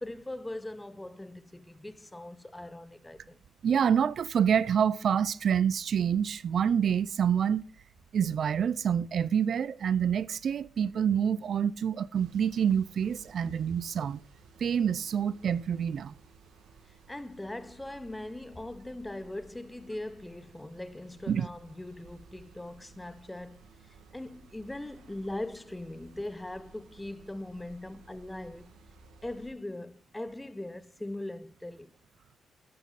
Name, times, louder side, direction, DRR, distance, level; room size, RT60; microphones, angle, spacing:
voice 1, 0.0-3.4 13.5-13.6 17.1-23.7 24.1-28.7 29.2-31.9, left 1 dB, 10° left, 0.8 m, -40 dB
voice 2, 3.6-7.6 8.1-14.2 14.6-16.1 21.3-21.5, right 8 dB, 55° right, 0.5 m, -27 dB
sound 1, 12.1-29.5, right 4 dB, 80° right, 2.0 m, -57 dB
12.5 x 9.3 x 4.1 m
cardioid pair, 90°, 0 cm